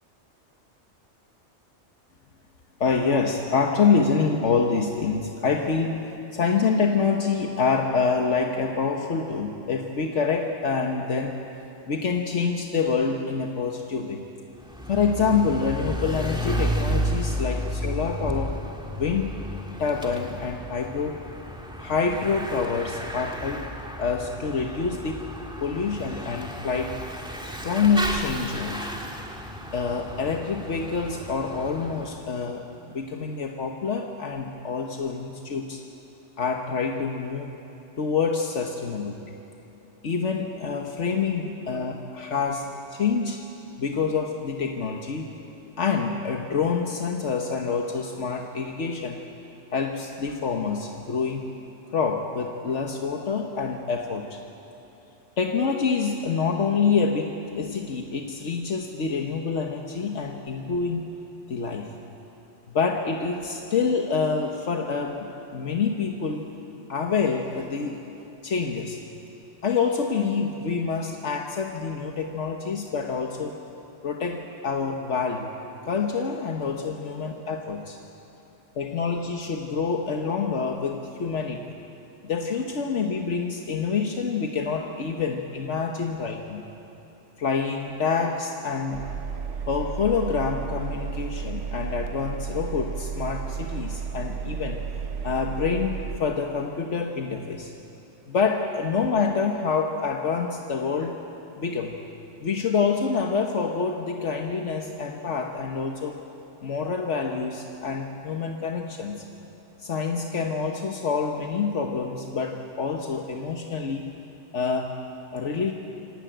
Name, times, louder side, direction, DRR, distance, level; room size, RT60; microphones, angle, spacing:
voice 1, 2.8-11.4 11.9-14.2 14.9-18.6 18.9-19.4 19.8-21.2 21.8-23.7 24.0-25.2 25.6-27.0 27.6-29.0 29.7-35.8 36.4-37.5 38.0-39.2 40.0-43.4 43.8-45.3 45.8-49.2 49.7-51.5 51.9-54.4 55.4-61.1 61.5-61.9 62.7-66.5 66.9-68.0 68.4-69.0 69.6-73.5 74.0-75.5 75.8-78.0 78.7-81.6 82.2-86.6 87.4-89.0 89.7-94.8 95.2-97.7 98.3-101.2 101.6-102.0 102.4-106.1 106.6-109.2 109.8-114.1 114.5-115.0 115.3-115.7, left 5 dB, 75° left, 2 dB, 1.5 m, -26 dB
Bicycle / Mechanisms, 14.6-32.2, equal, 5° right, 1.8 m, -33 dB
Engine, 88.9-96.2, right 6 dB, 75° right, 1.3 m, -33 dB
26.0 x 18.0 x 9.1 m, 2.9 s
omnidirectional pair, 1.2 m